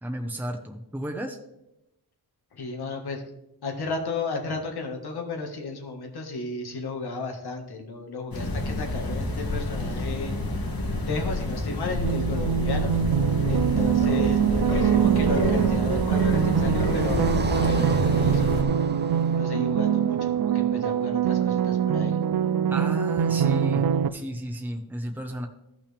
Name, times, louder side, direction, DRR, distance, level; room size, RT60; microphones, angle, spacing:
voice 1, 0.0-1.4 22.7-25.5, right 1 dB, 5° right, 3 dB, 1.0 m, -33 dB
voice 2, 2.5-3.2 3.6-10.4 11.1-12.9 13.5-17.4 17.7-22.2, left 3 dB, 85° left, 3 dB, 1.8 m, -33 dB
sound 1, 8.3-18.6, left 2 dB, 65° left, 2.0 m, -28 dB
sound 2, 12.0-24.1, right 9 dB, 70° right, 0.6 m, -23 dB
Car passing by, 14.5-21.6, right 4 dB, 25° right, 0.6 m, -36 dB
14.5 x 5.9 x 3.5 m, 0.90 s
wide cardioid pair, 90°, 38 cm